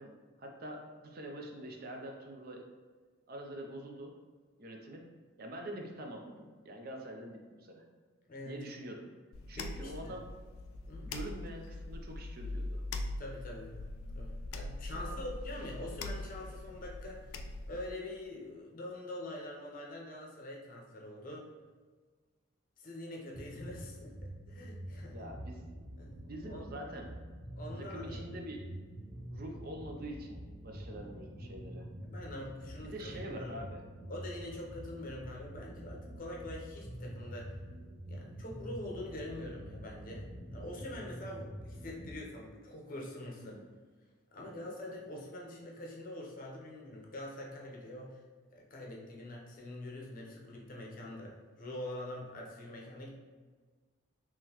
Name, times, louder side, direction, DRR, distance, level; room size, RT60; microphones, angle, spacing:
voice 1, 0.0-2.7 3.3-4.2 4.6-5.1 5.4-7.8 8.4-9.1 9.5-10.3 11.0-12.8 14.9-15.3 25.1-25.7 26.2-27.1 27.8-28.6 29.3-31.9 32.8-33.8 35.0-35.1 43.4-43.7 44.4-44.6, right 1 dB, 45° right, 1 dB, 0.5 m, -45 dB
sound 1, 9.3-17.9, left 2 dB, 75° left, 0.3 m, -42 dB
voice 2, 9.6-10.2 10.9-11.1 13.2-13.8 14.1-21.5 22.8-25.3 26.0-26.2 26.4-26.7 27.5-28.2 32.0-33.6 34.1-37.5 38.1-43.6 44.3-48.2 48.5-53.1, left 1 dB, 40° left, -2 dB, 0.6 m, -44 dB
sound 2, 23.3-42.1, equal, 65° right, 1.2 m, -46 dB
3.7 x 3.0 x 2.9 m, 1.5 s
head